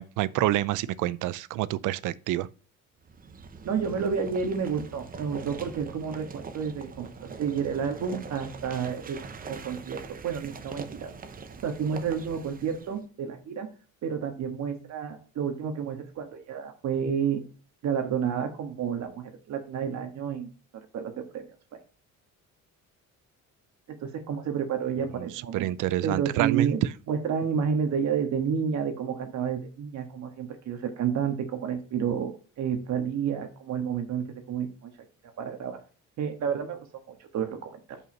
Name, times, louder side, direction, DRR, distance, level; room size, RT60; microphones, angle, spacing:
voice 1, 0.0-2.5 25.2-25.3 25.5-26.7, right 14 dB, 75° right, 0.5 m, -27 dB
sound 1, 3.0-13.0, right 5 dB, 30° right, 0.7 m, -42 dB
voice 2, 3.6-11.1 11.6-13.7 14.0-17.4 17.8-20.5 20.9-21.5 24.0-25.7 26.0-26.8 27.1-34.9 35.4-35.8 36.2-38.0, right 7 dB, 60° right, 1.6 m, -30 dB
5.5 x 4.7 x 5.3 m
cardioid pair, 140°, 31 cm